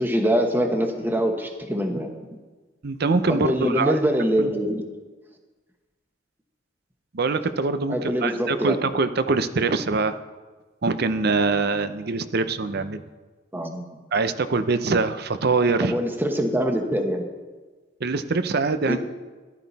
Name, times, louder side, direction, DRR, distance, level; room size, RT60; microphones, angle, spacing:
voice 1, 0.0-2.1 3.3-4.8 7.9-8.8 13.5-13.9 15.8-17.3 18.8-19.0, equal, 10° right, 3 dB, 1.2 m, -24 dB
voice 2, 2.8-4.0 4.4-4.5 7.1-10.2 10.8-13.0 14.1-16.0 18.0-19.0, right 3 dB, 55° right, 12 dB, 0.6 m, -23 dB
14.5 x 11.5 x 4.1 m, 1.3 s
head